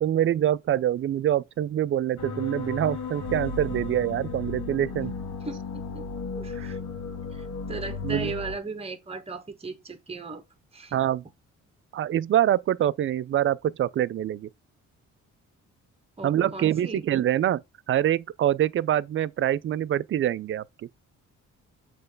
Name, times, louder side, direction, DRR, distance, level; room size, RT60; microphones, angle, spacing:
voice 1, 0.0-5.1 6.6-6.7 8.0-8.3 10.9-11.2 11.9-14.5 16.2-17.6 17.9-20.6, right 11 dB, 45° right, 0.4 m, -25 dB
sound 1, 2.2-8.6, left 4 dB, 70° left, 1.5 m, -34 dB
voice 2, 5.4-6.1 6.3-6.8 7.3-10.4 10.7-11.0 16.2-17.0, right 3 dB, 20° right, 1.2 m, -37 dB
6.8 x 3.3 x 5.2 m
cardioid pair, 90°, 30 cm